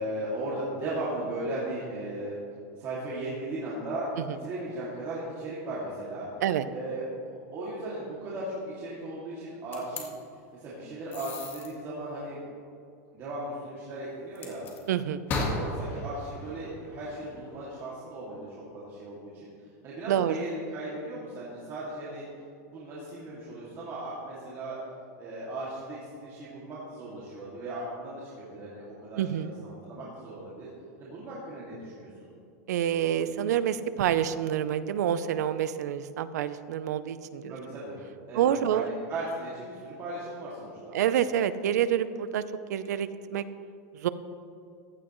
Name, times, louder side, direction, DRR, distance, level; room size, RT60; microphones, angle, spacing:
voice 1, 0.0-2.4 2.8-6.3 6.7-10.2 10.5-12.4 13.1-14.6 15.4-19.5 19.8-22.3 22.7-24.8 25.2-30.7 31.0-32.3 37.5-38.0 38.3-41.0, right 1 dB, 30° right, -7 dB, 2.5 m, -37 dB
sound 1, 9.7-10.0 11.1-11.7 14.4-14.8 15.3-17.5, left 2 dB, 25° left, 1.7 m, -35 dB
voice 2, 14.9-15.2 20.1-20.3 29.2-29.5 32.7-37.5 38.3-38.9 40.9-42.4 42.7-43.4 43.9-44.1, right 10 dB, 85° right, 13 dB, 0.7 m, -27 dB
15.5 x 12.5 x 3.2 m, 2.5 s
supercardioid pair, 165°, 9 cm